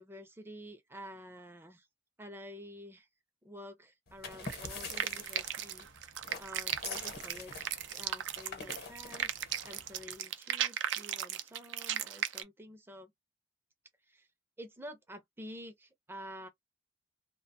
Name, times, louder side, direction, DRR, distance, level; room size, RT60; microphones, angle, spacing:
voice 1, 0.0-1.9 2.2-3.1 3.4-13.1 14.1-14.3 14.6-16.5, equal, 10° right, 0.5 m, -49 dB
sound 1, 4.1-10.1, left 4 dB, 55° left, 1.0 m, -46 dB
sound 2, 4.4-12.4, right 10 dB, 80° right, 0.4 m, -36 dB
2.4 x 2.2 x 2.7 m
head